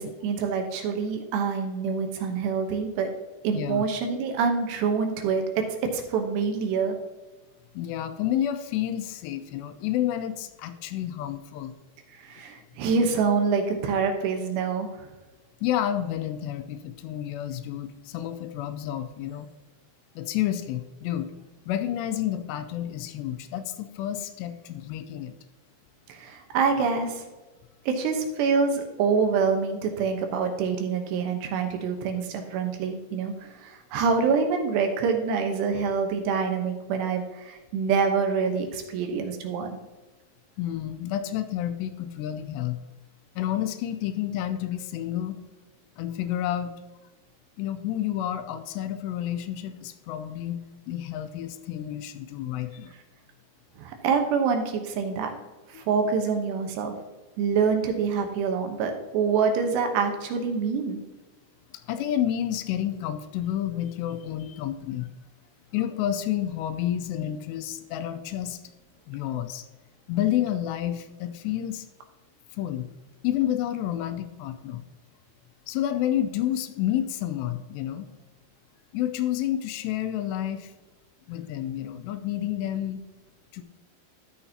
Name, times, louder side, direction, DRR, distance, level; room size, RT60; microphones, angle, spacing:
voice 1, 0.0-3.1 3.4-5.6 5.9-7.0 12.1-15.1 26.1-27.2 27.9-39.8 53.8-55.4 55.7-56.9 57.4-61.0, right 5 dB, 80° right, 4 dB, 3.1 m, -26 dB
voice 2, 3.5-3.8 7.7-11.7 15.6-19.5 20.2-21.3 21.7-25.3 40.6-42.8 43.4-45.4 46.0-46.7 47.6-52.9 55.7-55.9 61.9-65.1 65.7-68.6 69.1-69.6 70.1-71.9 72.6-72.9 73.2-74.8 75.7-78.1 78.9-80.7 81.3-83.0 83.5-83.6, left 11 dB, 85° left, 10 dB, 2.7 m, -30 dB
13.0 x 6.5 x 2.8 m, 1.2 s
omnidirectional pair, 4.9 m